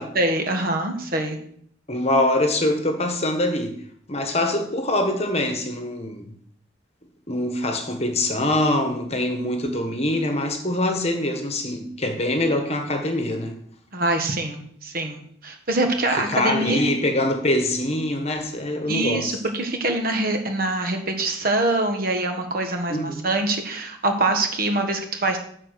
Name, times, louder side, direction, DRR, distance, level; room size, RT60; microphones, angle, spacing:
voice 1, 0.1-1.4 13.9-16.8 18.9-25.4, right 2 dB, 50° right, 1.4 m, -24 dB
voice 2, 1.9-3.8 4.1-6.3 7.3-13.6 16.1-19.4 22.9-23.2, left 1 dB, 35° left, 1.3 m, -24 dB
10.5 x 4.5 x 6.7 m
head